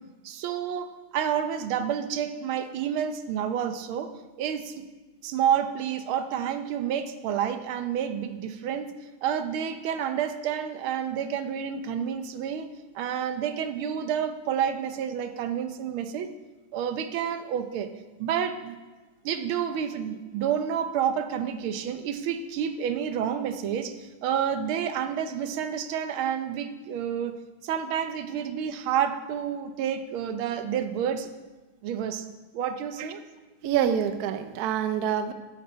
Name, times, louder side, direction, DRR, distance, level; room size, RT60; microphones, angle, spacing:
voice 1, 0.2-4.1 4.4-4.8 5.2-8.9 9.2-12.7 12.9-16.3 16.7-17.9 18.2-18.8 19.2-27.3 27.6-31.3 31.8-32.3 32.5-33.2, right 8 dB, 90° right, 8 dB, 1.6 m, -29 dB
voice 2, 33.6-35.3, right 9 dB, 65° right, 9 dB, 1.0 m, -26 dB
13.0 x 8.3 x 4.3 m, 1.2 s
omnidirectional pair, 2.2 m